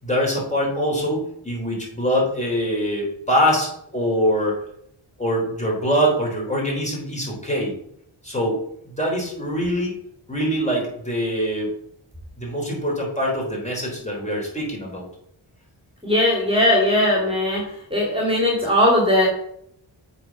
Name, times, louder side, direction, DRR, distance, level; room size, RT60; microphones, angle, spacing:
voice 1, 0.0-4.6 5.2-7.7 8.2-8.6 9.0-9.9 10.3-11.7 12.4-15.0, equal, 15° left, -3 dB, 3.6 m, -23 dB
voice 2, 16.0-17.6 17.9-19.3, left 1 dB, 10° right, -3 dB, 2.6 m, -18 dB
7.5 x 4.4 x 5.9 m, 0.71 s
wide cardioid pair, 65°, 48 cm